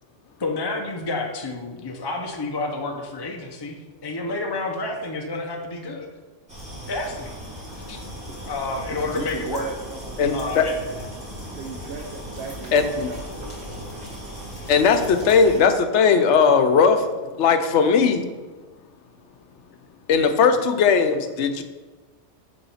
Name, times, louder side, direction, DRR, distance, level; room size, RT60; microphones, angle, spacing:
voice 1, 0.4-6.1 6.9-7.3 7.7-8.0 8.4-9.7 10.3-11.1, left 3 dB, 30° left, 2 dB, 0.5 m, -30 dB
sound 1, 6.5-15.6, equal, 5° right, 2.1 m, -37 dB
voice 2, 8.9-10.9 11.4-13.3, right 6 dB, 65° right, 1 dB, 0.8 m, -37 dB
voice 3, 10.2-10.7 12.7-13.1 14.7-17.1 17.4-18.2 20.1-21.6, left 5 dB, 75° left, 8 dB, 0.9 m, -18 dB
7.0 x 3.5 x 5.5 m, 1.3 s
omnidirectional pair, 1.2 m